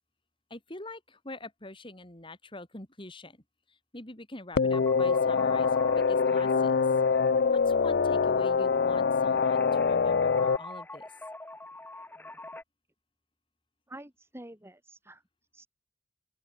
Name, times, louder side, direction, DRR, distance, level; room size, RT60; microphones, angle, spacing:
voice 1, 0.5-3.4 3.7-6.9 7.5-11.1, left 2 dB, 30° left, 4.1 m, -45 dB
sound 1, 4.6-10.6, left 5 dB, 60° left, 0.5 m, -24 dB
sound 2, 4.7-12.6, left 2 dB, 10° left, 1.9 m, -44 dB
voice 2, 13.9-15.2 15.5-15.7, right 1 dB, 15° right, 3.1 m, -47 dB
open air
head